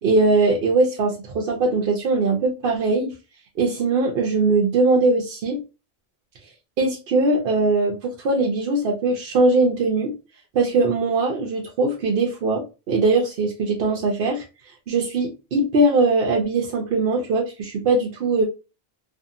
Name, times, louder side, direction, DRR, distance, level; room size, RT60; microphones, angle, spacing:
voice 1, 0.0-3.1 3.6-5.6 6.8-10.1 10.5-14.4 14.9-18.4, right 3 dB, 70° right, 0.8 m, -21 dB
2.6 x 2.5 x 2.6 m
omnidirectional pair, 1.0 m